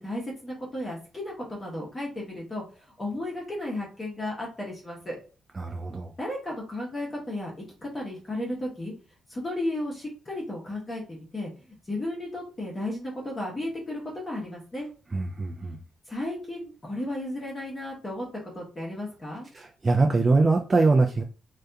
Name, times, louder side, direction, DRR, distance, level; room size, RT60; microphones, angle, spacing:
voice 1, 0.0-5.2 6.2-8.9 9.3-14.9 16.1-19.5, left 1 dB, 25° left, -3 dB, 0.8 m, -34 dB
voice 2, 5.6-6.1 15.1-15.8 19.5-21.2, right 3 dB, 25° right, 2 dB, 0.3 m, -23 dB
2.7 x 2.3 x 2.2 m, 0.36 s
cardioid pair, 110°, 0 cm